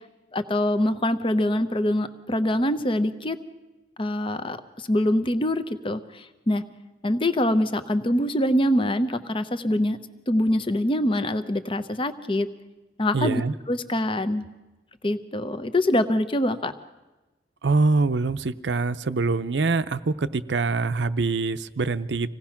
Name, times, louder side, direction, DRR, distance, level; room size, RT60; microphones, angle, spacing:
voice 1, 0.3-3.4 4.0-6.6 7.0-10.0 10.3-12.5 13.0-13.4 13.7-14.5 15.0-16.7, left 1 dB, 30° left, 11 dB, 0.8 m, -24 dB
voice 2, 13.1-13.5 17.6-22.3, right 3 dB, 85° right, 12 dB, 0.7 m, -24 dB
26.0 x 17.5 x 5.9 m, 1.1 s
head